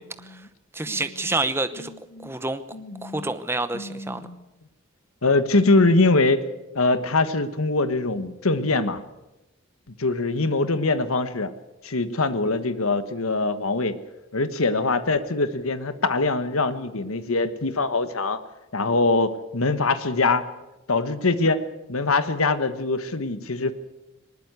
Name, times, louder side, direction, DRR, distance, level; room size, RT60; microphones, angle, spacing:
voice 1, 0.7-1.9 2.2-2.6 3.0-4.3, right 2 dB, 10° right, 10 dB, 0.8 m, -28 dB
voice 2, 2.7-3.3 3.7-4.4 5.2-6.4 6.7-9.0 10.0-11.5 11.8-14.0 14.3-18.4 18.7-20.4 20.9-21.6 21.9-23.7, left 3 dB, 80° left, 11 dB, 1.3 m, -23 dB
20.0 x 19.5 x 8.2 m, 0.99 s
head